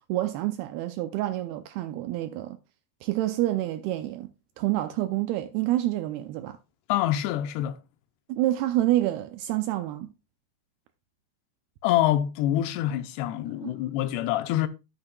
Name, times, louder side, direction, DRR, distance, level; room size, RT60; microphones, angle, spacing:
voice 1, 0.1-2.6 3.0-4.3 4.6-6.6 8.3-10.1 13.6-13.7, right 15 dB, 90° right, 2.2 m, -28 dB
voice 2, 6.9-7.8 11.8-14.7, left 12 dB, 80° left, 2.6 m, -26 dB
10.5 x 9.8 x 2.2 m
omnidirectional pair, 5.1 m